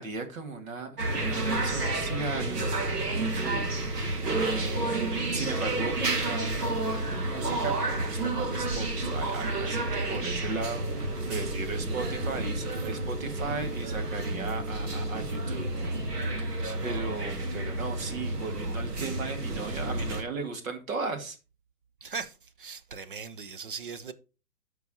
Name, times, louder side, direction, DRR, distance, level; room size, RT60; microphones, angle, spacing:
voice 1, 0.0-2.7 3.1-3.6 4.5-15.7 16.4-21.4, right 4 dB, 55° right, 2.0 m, -37 dB
sound 1, 1.0-20.2, right 2 dB, 75° right, 2.0 m, -30 dB
voice 2, 16.6-17.0 22.0-24.1, right 5 dB, 35° right, 0.5 m, -40 dB
12.5 x 4.7 x 2.8 m
figure-of-eight pair, 135°, 48 cm